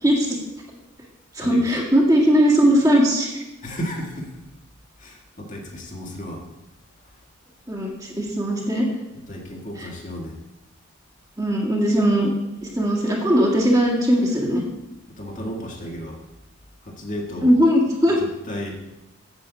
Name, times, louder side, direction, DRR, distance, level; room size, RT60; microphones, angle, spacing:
voice 1, 0.0-0.4 1.3-3.3 7.7-8.9 9.8-9.9 11.4-12.3 12.6-14.6 17.4-18.2, equal, 15° right, -1 dB, 1.8 m, -19 dB
voice 2, 3.6-4.3 5.0-6.5 7.0-7.1 9.3-10.4 15.2-16.2 16.8-17.5 18.2-18.8, equal, 35° left, 0 dB, 1.8 m, -33 dB
8.6 x 7.8 x 7.1 m, 0.96 s
head